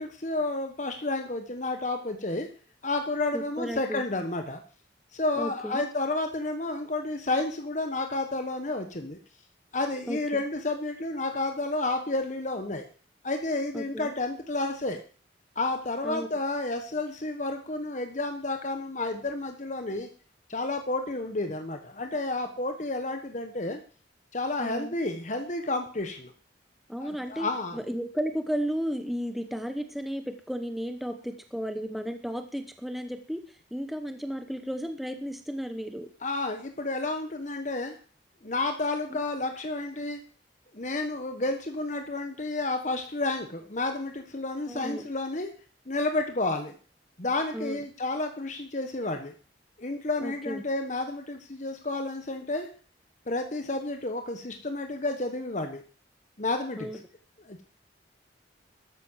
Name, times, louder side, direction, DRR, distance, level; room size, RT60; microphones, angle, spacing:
voice 1, 0.0-2.5 2.8-4.6 5.1-9.2 9.7-12.8 13.2-15.0 15.5-20.1 20.5-23.8 24.3-26.3 27.0-27.8 36.2-38.0 38.4-40.2 40.7-45.5 45.9-46.8 47.2-49.3 49.8-52.7 53.3-55.8 56.4-56.9 57.4-57.6, left 2 dB, 40° left, 6 dB, 1.3 m, -31 dB
voice 2, 3.3-4.0 5.4-5.8 10.1-10.2 13.7-14.1 16.0-16.3 24.6-24.9 26.9-36.1 39.1-39.2 44.7-45.0 47.5-47.8 50.2-50.6 56.8-57.0, equal, ahead, 7 dB, 1.0 m, -34 dB
13.0 x 9.5 x 7.3 m, 0.42 s
head